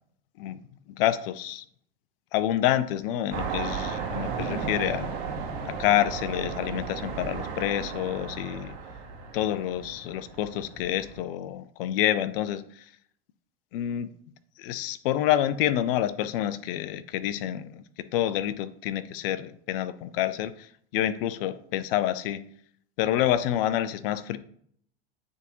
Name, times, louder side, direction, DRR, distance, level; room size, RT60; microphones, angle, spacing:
voice 1, 1.0-1.6 2.3-5.1 5.6-8.7 9.3-12.8 13.7-14.1 14.6-17.8 18.1-22.4 23.0-24.4, left 12 dB, 60° left, 13 dB, 0.6 m, -28 dB
sound 1, 3.3-11.2, right 5 dB, 55° right, 1.6 m, -35 dB
9.1 x 3.6 x 3.0 m, 0.62 s
hypercardioid pair, 95°, 32 cm